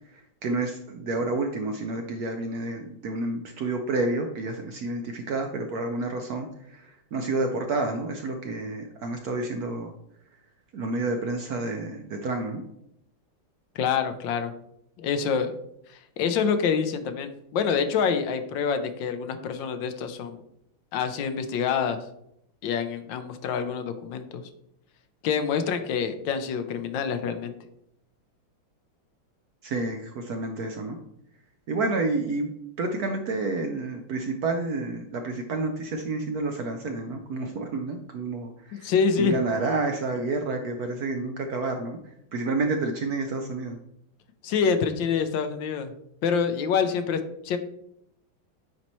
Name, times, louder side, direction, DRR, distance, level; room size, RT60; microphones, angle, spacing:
voice 1, 0.4-6.5 7.1-9.9 10.7-12.6 29.6-31.0 31.7-32.5 32.8-38.5 38.8-38.9 39.2-42.0 42.3-43.8, right 3 dB, 65° right, 4 dB, 0.9 m, -29 dB
voice 2, 13.8-14.5 15.0-15.6 15.9-20.4 20.9-22.0 22.6-24.4 25.2-27.5 38.7-39.4 44.4-45.9 46.2-47.6, left 6 dB, 75° left, 8 dB, 1.3 m, -26 dB
9.4 x 4.3 x 3.0 m, 0.77 s
omnidirectional pair, 2.1 m